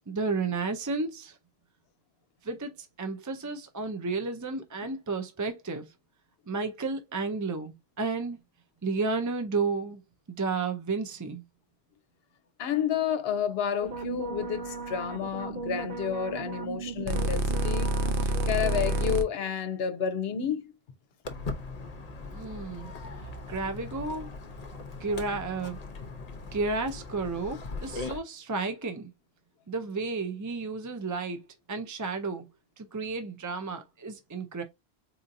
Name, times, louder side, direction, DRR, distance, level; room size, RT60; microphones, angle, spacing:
voice 1, 0.1-1.4 2.4-5.9 6.5-8.4 8.8-10.0 10.3-11.4 22.3-22.9 23.5-24.3 25.0-25.8 26.5-29.1 29.7-32.5 32.8-34.6, right 4 dB, 30° right, 0.3 m, -32 dB
voice 2, 12.6-17.9 18.2-20.7, left 8 dB, 75° left, 0.8 m, -30 dB
sound 1, 13.8-19.2, right 1 dB, 60° right, 0.8 m, -30 dB
Walk footsteps, 21.2-28.2, left 3 dB, 45° left, 0.7 m, -39 dB
4.2 x 2.6 x 2.5 m
omnidirectional pair, 1.1 m